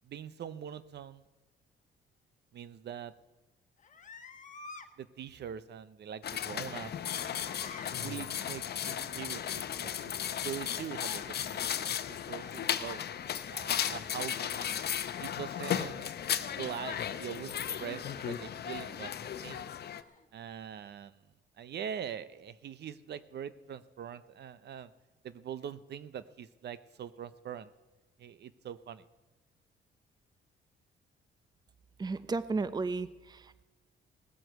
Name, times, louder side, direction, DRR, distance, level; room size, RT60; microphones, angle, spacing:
voice 1, 0.0-1.2 2.5-3.1 5.0-6.9 7.9-10.1 10.4-13.0 13.5-14.8 15.2-16.1 16.6-19.1 19.4-19.6 20.3-21.2 21.6-24.9 25.2-27.7 28.2-29.1, right 9 dB, 60° right, 15 dB, 0.7 m, -43 dB
sound 1, 3.8-4.9 6.6-8.0 10.9-11.3 12.1-13.0 14.3-14.7 15.5-16.0 17.7-18.5 19.8-20.2, left 5 dB, 40° left, 1.3 m, -50 dB
sound 2, 6.2-20.0, left 9 dB, 55° left, 0.8 m, -35 dB
voice 2, 32.0-33.6, right 3 dB, 20° right, 15 dB, 0.6 m, -34 dB
17.5 x 7.7 x 8.0 m, 1.1 s
cardioid pair, 90°, 20 cm